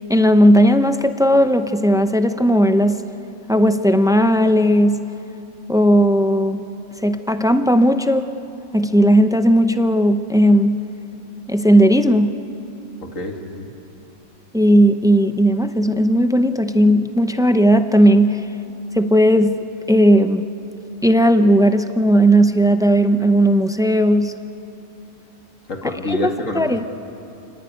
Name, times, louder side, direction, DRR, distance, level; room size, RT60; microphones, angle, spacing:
voice 1, 0.1-3.0 3.5-5.0 5.7-6.6 7.0-8.3 8.7-10.8 11.5-12.3 14.5-18.4 18.9-19.6 19.9-20.4 21.0-24.3 26.1-26.8, equal, 5° right, 9 dB, 0.3 m, -15 dB
voice 2, 13.0-13.7 25.7-26.9, left 1 dB, 65° left, 3 dB, 2.5 m, -27 dB
29.0 x 19.0 x 9.5 m, 2.9 s
omnidirectional pair, 1.4 m